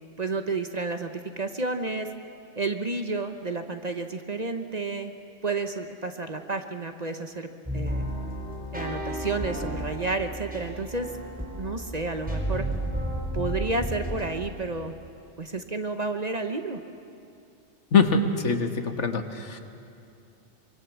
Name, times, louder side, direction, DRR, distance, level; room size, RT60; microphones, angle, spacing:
voice 1, 0.2-2.1 2.6-5.1 5.4-8.1 8.7-11.1 11.6-12.6 13.3-14.9 15.4-16.8, right 3 dB, 35° right, 6 dB, 1.0 m, -31 dB
sound 1, 7.7-14.3, right 1 dB, 5° right, 4.4 m, -32 dB
voice 2, 17.9-19.6, left 4 dB, 70° left, 6 dB, 1.6 m, -23 dB
24.5 x 23.5 x 7.2 m, 2.6 s
omnidirectional pair, 1.3 m